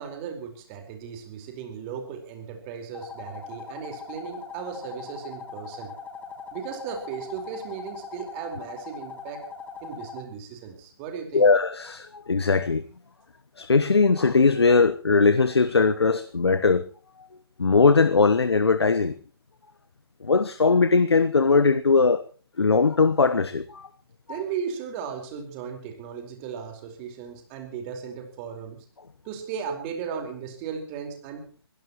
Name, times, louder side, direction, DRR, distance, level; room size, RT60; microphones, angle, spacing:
voice 1, 0.0-5.9 6.5-9.4 9.8-11.5 24.3-28.8 29.2-31.5, right 7 dB, 30° right, 4.6 m, -36 dB
sound 1, 2.9-10.2, left 5 dB, 10° left, 1.6 m, -40 dB
voice 2, 11.3-12.8 13.6-16.9 17.6-19.1 20.2-22.2 22.6-23.9, left 4 dB, 80° left, 1.1 m, -20 dB
24.5 x 16.5 x 3.1 m
figure-of-eight pair, 135°, 13 cm